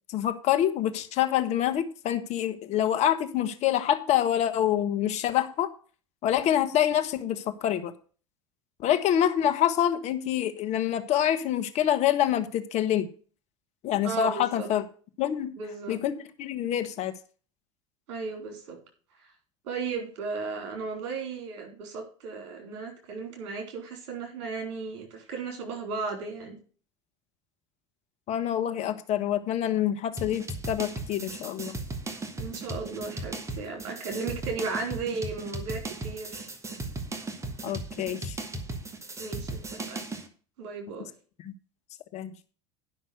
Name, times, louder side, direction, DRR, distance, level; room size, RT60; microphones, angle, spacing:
voice 1, 0.1-5.7 6.2-7.9 8.8-13.1 13.8-14.8 15.2-15.5 15.9-17.1 28.3-31.8 37.6-38.4 41.4-41.5 42.1-42.3, left 11 dB, 50° left, 9 dB, 1.3 m, -26 dB
voice 2, 14.0-14.7 15.6-16.0 18.1-18.8 19.6-26.6 32.4-36.5 39.2-40.0 40.6-41.1, right 4 dB, 65° right, 3 dB, 4.1 m, -35 dB
sound 1, 30.2-40.3, right 2 dB, 20° right, 2.0 m, -37 dB
11.0 x 6.0 x 6.4 m, 0.40 s
hypercardioid pair, 75°, 15 cm